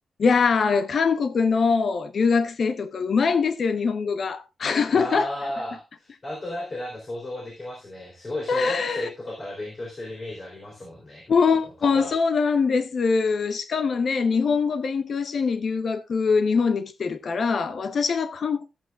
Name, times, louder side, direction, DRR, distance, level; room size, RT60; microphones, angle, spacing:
voice 1, 0.2-5.3 8.5-9.1 11.3-18.7, left 5 dB, 50° left, 0.9 m, -23 dB
voice 2, 4.9-11.2 11.9-12.1, left 1 dB, 25° left, 3.5 m, -34 dB
14.5 x 8.4 x 2.4 m
wide cardioid pair, 175°, 0 cm